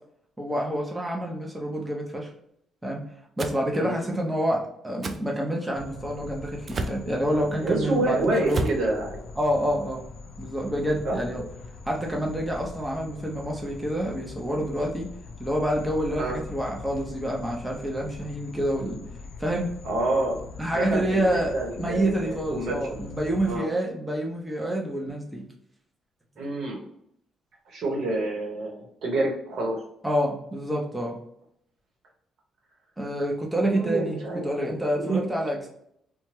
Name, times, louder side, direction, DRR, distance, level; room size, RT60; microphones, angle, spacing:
voice 1, 0.4-2.3 2.8-3.0 3.4-8.7 9.4-10.0 10.4-11.4 11.8-15.1 15.4-19.0 19.4-19.7 20.6-21.5 21.8-25.4 30.0-31.2 33.0-35.7, right 1 dB, 10° right, -1 dB, 0.7 m, -28 dB
sound 1, 3.4-3.6 5.0-5.2 6.7-7.0 8.5-8.8, right 3 dB, 45° right, 0.3 m, -30 dB
sound 2, 5.7-23.6, left 4 dB, 70° left, 0.4 m, -42 dB
voice 2, 7.6-9.1 11.0-11.2 16.2-16.4 19.8-20.4 20.7-22.8 23.4-23.7 26.4-26.8 27.7-29.8 33.5-35.2, right 2 dB, 70° right, -1 dB, 1.0 m, -28 dB
2.8 x 2.2 x 3.1 m, 0.72 s
cardioid pair, 90°, 0 cm